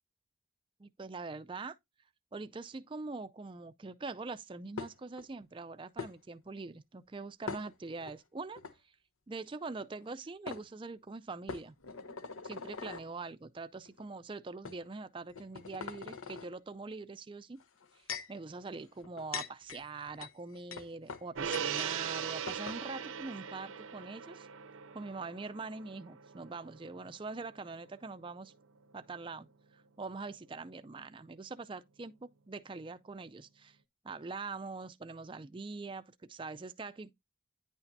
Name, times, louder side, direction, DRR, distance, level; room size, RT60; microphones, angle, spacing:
voice 1, 0.8-1.8 2.3-8.6 9.3-11.7 12.4-17.6 18.0-24.5 24.9-28.5 28.9-29.5 29.7-33.8 34.0-37.1, right 3 dB, 25° right, 0.4 m, -43 dB
sound 1, 4.8-5.2 6.0-6.1 7.5-8.1 8.6-8.7 10.0-10.1 10.5-10.6 11.5-13.1 13.9-14.0 14.6-14.8 15.3-16.5 17.6-18.4 19.0-21.9 22.2-22.3 22.5-22.8, left 5 dB, 85° left, 0.9 m, -42 dB
Gong, 21.4-28.0 28.3-28.5, right 8 dB, 75° right, 0.6 m, -40 dB
9.8 x 5.8 x 2.6 m
head